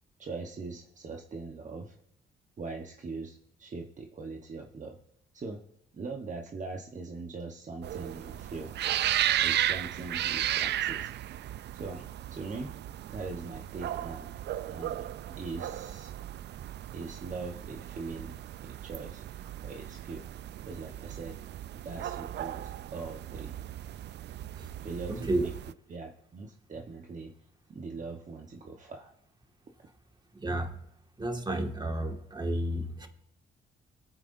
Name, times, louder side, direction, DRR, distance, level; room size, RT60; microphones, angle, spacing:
voice 1, 0.2-2.0 2.6-5.0 5.3-5.6 5.9-8.8 9.4-11.1 11.7-12.7 13.1-14.3 14.7-16.2 16.9-18.4 18.6-19.2 19.6-20.3 20.7-21.4 21.8-23.6 24.8-25.5 25.9-27.3 27.7-29.1, right 4 dB, 40° right, 2 dB, 1.1 m, -41 dB
sound 1, 7.8-25.7, right 12 dB, 60° right, 0.4 m, -35 dB
voice 2, 25.1-25.5 30.3-30.8 31.2-33.1, right 1 dB, 20° right, 3 dB, 1.8 m, -31 dB
24.0 x 9.1 x 2.6 m, 0.80 s
cardioid pair, 90°, 20 cm